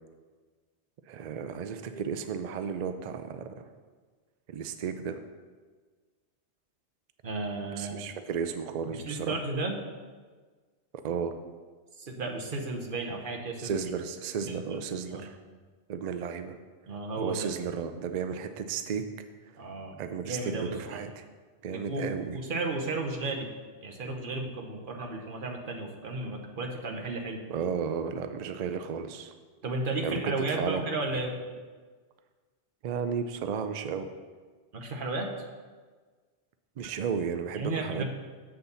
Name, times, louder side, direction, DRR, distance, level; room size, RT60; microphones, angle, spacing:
voice 1, 1.1-3.7 4.5-5.2 7.8-9.4 11.0-11.3 13.6-15.4 15.9-16.6 17.2-19.0 19.5-19.6 20.0-21.2 21.6-22.4 27.5-29.3 30.0-30.8 31.1-31.2 32.8-34.1 36.8-38.1, right 6 dB, 65° right, 9 dB, 0.4 m, -33 dB
voice 2, 7.2-8.1 8.9-9.7 12.0-13.7 14.4-14.8 15.1-15.3 16.9-17.5 19.6-21.0 21.6-22.0 22.3-23.5 23.8-27.4 29.6-31.3 34.7-35.3 37.6-38.1, right 2 dB, 50° right, 1 dB, 1.1 m, -34 dB
7.8 x 4.1 x 6.8 m, 1.4 s
omnidirectional pair, 1.2 m